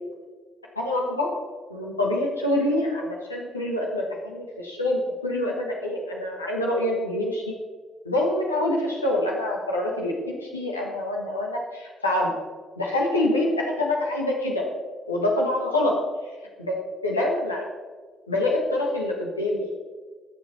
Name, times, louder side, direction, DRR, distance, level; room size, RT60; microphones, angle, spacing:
voice 1, 0.7-1.3 1.7-7.5 8.0-12.3 12.8-14.7 15.1-16.0 16.6-16.7 17.0-17.7 18.3-19.7, left 1 dB, 85° left, -2 dB, 1.5 m, -26 dB
19.5 x 6.9 x 4.2 m, 1.4 s
figure-of-eight pair, 45°, 0 cm